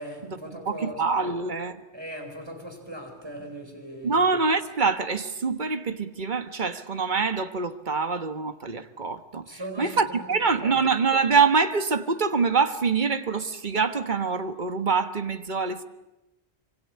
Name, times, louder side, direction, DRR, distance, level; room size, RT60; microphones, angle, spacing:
voice 1, 0.0-1.4 1.9-4.3 9.5-10.7, right 1 dB, 20° right, 4.6 m, -39 dB
voice 2, 0.6-1.8 4.0-15.8, right 4 dB, 45° right, 1.5 m, -25 dB
26.0 x 24.5 x 8.5 m
omnidirectional pair, 1.1 m